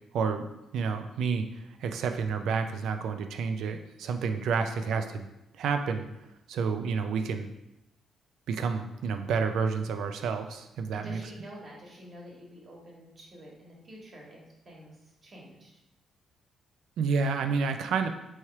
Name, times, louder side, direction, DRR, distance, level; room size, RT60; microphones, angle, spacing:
voice 1, 0.1-0.4 0.7-5.3 5.5-6.1 6.5-7.5 8.5-11.2 17.0-18.1, right 5 dB, 80° right, 7 dB, 0.4 m, -29 dB
voice 2, 10.9-15.7, equal, 45° right, -3 dB, 1.4 m, -48 dB
3.1 x 2.9 x 4.6 m, 0.91 s
cardioid pair, 75°, 0 cm